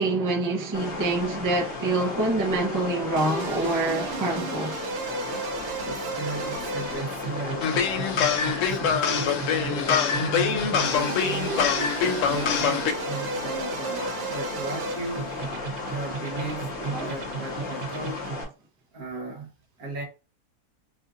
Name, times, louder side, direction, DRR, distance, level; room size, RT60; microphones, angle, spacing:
voice 1, 0.0-4.7 16.9-17.1, right 2 dB, 15° right, 0.7 m, -26 dB
sound 1, 0.7-18.4, left 3 dB, 50° left, 1.4 m, -35 dB
sound 2, 3.2-18.5, right 4 dB, 55° right, 0.7 m, -35 dB
voice 2, 5.8-8.2 8.7-11.6 12.0-15.3 15.8-18.3 18.9-19.5 19.8-20.0, right 2 dB, 75° right, 1.8 m, -36 dB
sound 3, 7.6-12.9, left 7 dB, 65° left, 0.9 m, -24 dB
5.5 x 2.5 x 2.5 m
omnidirectional pair, 1.6 m